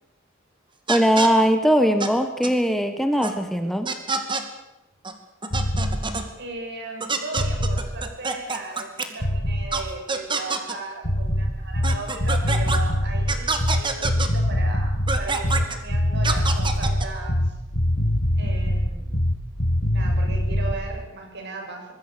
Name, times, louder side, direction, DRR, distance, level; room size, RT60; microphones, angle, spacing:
voice 1, 0.9-3.9, equal, ahead, 7 dB, 1.3 m, -20 dB
sound 1, 0.9-1.3 2.0-2.1 2.4-2.5 3.2-3.3 3.8-4.4 5.0-5.1 5.4-6.2 7.0-9.1 9.7-9.8 10.1-10.7 11.8-12.8 13.3-14.3 15.1-15.7 16.2-17.1, right 4 dB, 25° right, 2.4 m, -26 dB
sound 2, 5.5-6.0 7.4-7.9 9.2-9.7 11.0-20.8, equal, 50° left, 5.7 m, -23 dB
voice 2, 6.4-17.5 18.4-19.1 19.9-21.9, right 3 dB, 55° right, 2 dB, 6.8 m, -37 dB
24.5 x 21.0 x 6.9 m, 0.98 s
head